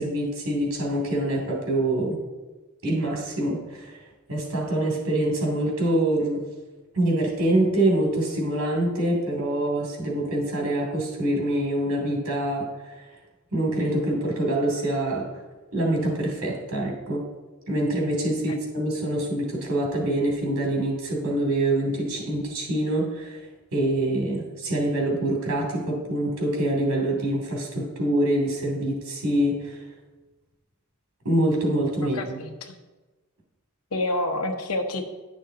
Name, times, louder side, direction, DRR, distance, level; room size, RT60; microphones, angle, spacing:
voice 1, 0.0-2.2 2.8-6.4 6.9-13.1 13.5-15.4 15.7-17.2 17.7-29.9 31.2-32.4, right 1 dB, 90° right, -1 dB, 2.8 m, -25 dB
voice 2, 32.1-32.8 33.9-35.0, left 1 dB, 80° left, 5 dB, 1.0 m, -28 dB
10.5 x 6.2 x 3.8 m, 1.2 s
head